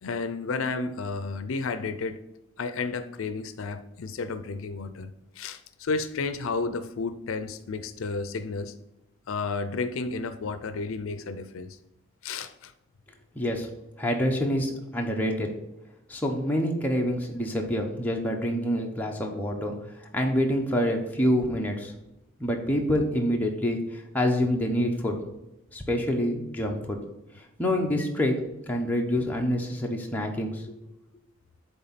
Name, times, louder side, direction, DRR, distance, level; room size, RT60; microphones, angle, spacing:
voice 1, 0.0-2.2 2.6-5.1 5.4-8.7 9.3-11.8 12.2-12.7, left 4 dB, 80° left, 11 dB, 0.5 m, -32 dB
voice 2, 13.3-13.7 14.0-15.5 16.1-19.8 20.1-21.9 22.4-25.2 25.7-27.0 27.3-28.3 28.7-30.8, equal, 10° left, 0 dB, 0.9 m, -27 dB
8.1 x 3.5 x 5.8 m, 0.92 s
head